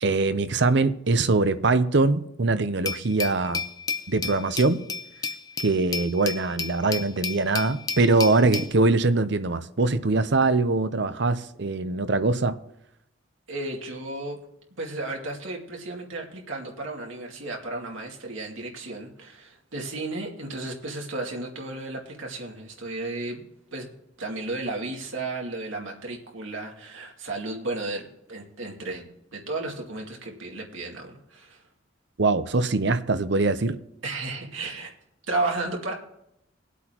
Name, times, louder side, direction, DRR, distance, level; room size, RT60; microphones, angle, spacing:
voice 1, 0.0-3.6 4.1-4.8 5.6-12.6 32.2-33.8, right 3 dB, 60° right, 0.7 m, -22 dB
Glass, 2.9-8.7, left 5 dB, 20° left, 0.6 m, -32 dB
voice 2, 13.5-14.4 14.8-23.4 23.7-23.9 24.2-31.6 34.0-34.9 35.3-35.9, right 2 dB, 85° right, 2.5 m, -33 dB
20.5 x 8.3 x 3.0 m
head